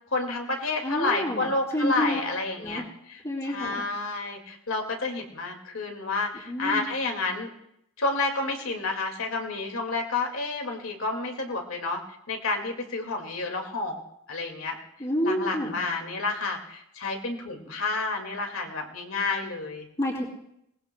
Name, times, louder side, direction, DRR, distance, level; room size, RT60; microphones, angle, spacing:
voice 1, 0.1-7.5 8.0-12.0 12.3-14.0 14.3-14.8 15.2-19.9, left 3 dB, 70° left, 3 dB, 2.1 m, -30 dB
voice 2, 0.8-2.2 2.6-2.9 3.2-3.8 6.5-6.9 15.0-15.8 20.0-20.2, left 1 dB, 25° left, -7 dB, 2.9 m, -28 dB
22.0 x 19.5 x 2.2 m, 0.77 s
head